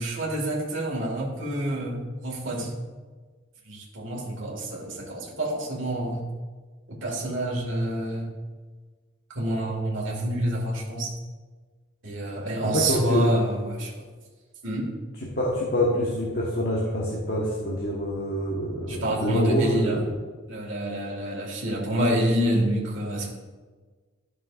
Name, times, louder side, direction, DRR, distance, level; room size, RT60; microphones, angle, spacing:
voice 1, 0.0-2.7 3.7-6.3 6.9-8.3 9.3-11.1 12.0-13.9 14.6-14.9 18.9-20.0 20.5-23.3, right 1 dB, 70° right, -1 dB, 1.9 m, -27 dB
voice 2, 12.6-13.3 15.3-20.1, equal, 50° left, -3 dB, 1.2 m, -26 dB
12.5 x 6.4 x 2.5 m, 1.4 s
head